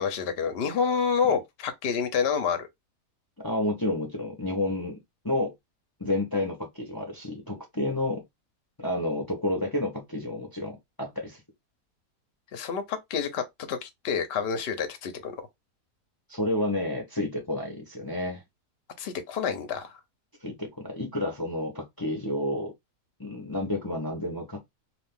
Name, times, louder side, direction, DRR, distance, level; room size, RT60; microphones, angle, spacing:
voice 1, 0.0-2.7 12.5-15.4 19.0-20.0, left 6 dB, 55° left, 0.7 m, -28 dB
voice 2, 3.4-5.0 5.2-5.5 6.0-8.2 8.8-11.4 16.3-18.4 20.4-22.7 23.2-24.6, left 1 dB, 25° left, 0.5 m, -30 dB
2.6 x 2.4 x 3.5 m
omnidirectional pair, 1.7 m